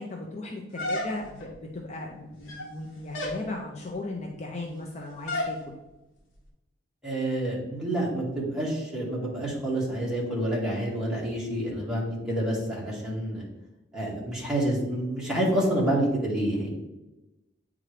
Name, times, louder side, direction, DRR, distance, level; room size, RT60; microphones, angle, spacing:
voice 1, 0.0-5.7, left 2 dB, 35° left, 0 dB, 0.6 m, -37 dB
sound 1, 0.8-1.5 2.3-2.8 3.1-3.4 5.3-5.6, left 1 dB, 80° left, 1.2 m, -31 dB
voice 2, 7.0-13.4 13.9-16.7, right 1 dB, 5° right, -6 dB, 1.8 m, -28 dB
8.6 x 3.7 x 3.3 m, 0.99 s
head